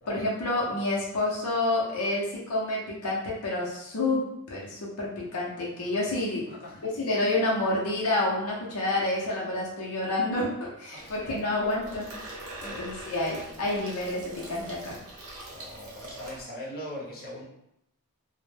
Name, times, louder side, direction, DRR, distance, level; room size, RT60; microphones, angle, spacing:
voice 1, 0.1-4.2 4.5-6.4 6.8-12.1 12.6-14.2 14.5-15.0, left 2 dB, 85° left, -4 dB, 0.6 m, -29 dB
voice 2, 6.5-6.8 10.9-11.4 12.6-12.8 15.5-17.4, equal, 45° left, -6 dB, 0.8 m, -41 dB
Water tap faucet / Sink (filling or washing), 11.0-16.4, right 1 dB, 75° right, 0.8 m, -43 dB
2.1 x 2.1 x 3.1 m, 0.80 s
head